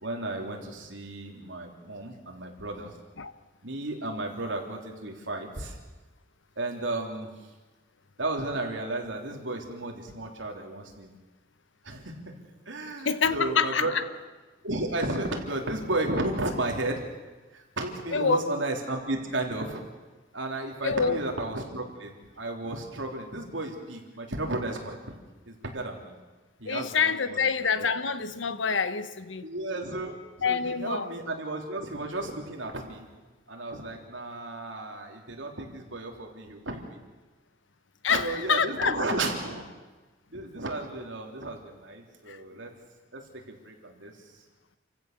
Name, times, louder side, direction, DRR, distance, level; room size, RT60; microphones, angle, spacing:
voice 1, 0.0-2.9 3.6-5.8 6.6-7.3 8.2-11.1 11.8-12.3 12.7-14.0 14.6-17.0 17.5-19.8 20.3-25.2 25.5-26.2 26.6-27.1 27.4-27.5 27.8-28.0 29.4-33.1 33.5-37.0 38.1-39.7 40.3-42.7 43.1-43.2 43.5-44.4, right 2 dB, 75° right, 1 dB, 3.5 m, -33 dB
voice 2, 13.0-13.9 18.1-18.4 20.8-21.2 26.6-29.4 30.4-31.1 38.0-39.1 42.3-42.4, left 6 dB, 75° left, 12 dB, 1.1 m, -26 dB
29.0 x 16.0 x 6.8 m, 1.2 s
head